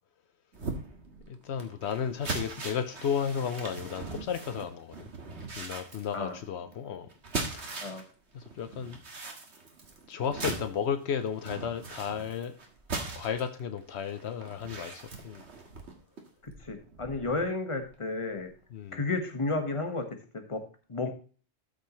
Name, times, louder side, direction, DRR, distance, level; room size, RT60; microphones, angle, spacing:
sound 1, 0.5-8.1 8.4-17.4 17.8-17.9 18.4-18.5, right 3 dB, 85° right, 1.9 m, -40 dB
voice 1, 1.3-5.1 5.6-7.1 7.6-7.8 8.3-9.0 10.1-12.5 13.2-15.4 18.7-19.0, left 7 dB, 80° left, 1.0 m, -33 dB
voice 2, 16.4-18.5 18.9-20.6 20.9-21.1, left 3 dB, 30° left, 1.4 m, -32 dB
13.0 x 6.6 x 3.1 m
omnidirectional pair, 1.1 m